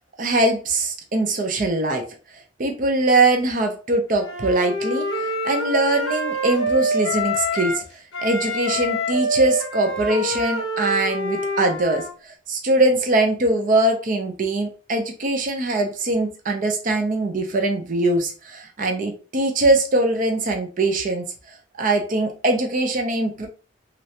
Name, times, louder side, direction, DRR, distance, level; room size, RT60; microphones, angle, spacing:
voice 1, 0.2-2.1 2.6-7.8 8.2-21.3 21.8-23.5, right 2 dB, 40° right, 4 dB, 0.5 m, -22 dB
Wind instrument woodwind instrument, 4.2-7.8 8.1-12.1, equal, 85° left, 0.8 m, -26 dB
3.1 x 2.5 x 2.8 m, 0.34 s
head